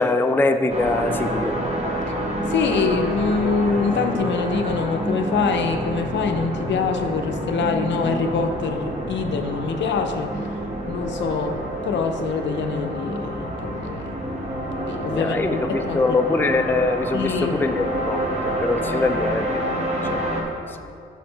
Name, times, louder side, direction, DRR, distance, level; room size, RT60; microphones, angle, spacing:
voice 1, 0.0-1.5 15.1-20.2 20.7-20.8, left 3 dB, 10° left, 7 dB, 0.4 m, -23 dB
sound 1, 0.7-20.4, right 1 dB, 30° right, 1.5 m, -28 dB
voice 2, 2.5-10.3 10.9-14.1 14.9-16.2 17.1-17.6, left 5 dB, 60° left, 5 dB, 0.6 m, -25 dB
5.8 x 4.2 x 5.6 m, 2.5 s
hypercardioid pair, 45°, 21 cm